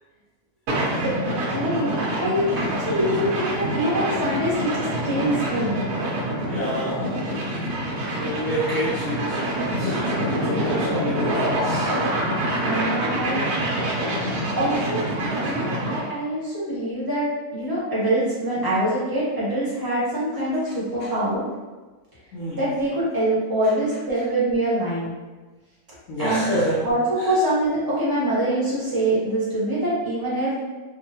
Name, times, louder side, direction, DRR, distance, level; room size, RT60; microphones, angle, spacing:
sound 1, 0.7-16.1, right 1 dB, 80° right, 1.2 m, -26 dB
voice 1, 1.0-5.7 12.6-13.4 14.6-17.3 17.5-21.4 22.5-25.1 26.2-26.4 26.8-27.0 27.2-30.7, right 1 dB, 15° right, -8 dB, 0.8 m, -24 dB
voice 2, 6.4-7.3 8.1-9.4 9.8-12.0 21.0-21.1 22.3-22.7 26.1-26.8 27.2-27.3, equal, 65° left, -8 dB, 1.0 m, -28 dB
3.5 x 2.0 x 2.9 m, 1.2 s
omnidirectional pair, 1.6 m